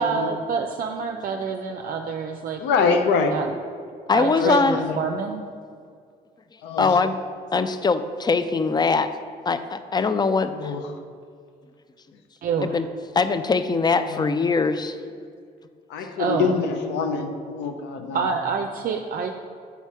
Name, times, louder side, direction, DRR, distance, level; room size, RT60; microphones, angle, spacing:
voice 1, 0.0-2.6 3.3-3.5 4.1-5.4 12.4-12.8 16.2-16.6 18.1-19.3, right 5 dB, 55° right, 4 dB, 0.5 m, -27 dB
voice 2, 2.6-3.3 4.3-4.9 6.6-6.9 10.5-10.8 14.1-14.2 15.9-18.2, left 5 dB, 85° left, 6 dB, 0.7 m, -25 dB
voice 3, 4.1-4.8 6.8-7.2 7.5-9.1 9.5-10.7 12.6-12.9 13.2-15.0, left 4 dB, 25° left, 11 dB, 0.4 m, -22 dB
7.0 x 4.3 x 4.7 m, 2.2 s
supercardioid pair, 60°, 18 cm